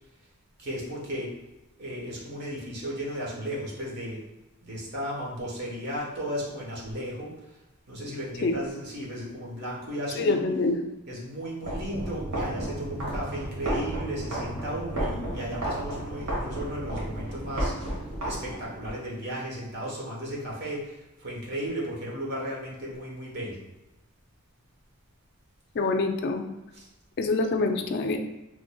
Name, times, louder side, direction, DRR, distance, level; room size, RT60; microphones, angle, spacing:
voice 1, 0.6-1.3 1.8-4.3 4.6-7.3 7.9-10.5 11.1-17.7 18.2-23.7 26.7-26.9, equal, 50° right, -4 dB, 1.0 m, -35 dB
voice 2, 10.2-10.8 25.7-26.5 27.2-28.2, left 3 dB, 50° left, 5 dB, 0.3 m, -25 dB
sound 1, 11.6-18.9, right 1 dB, 90° right, 1.5 m, -32 dB
3.7 x 3.1 x 2.2 m, 0.99 s
head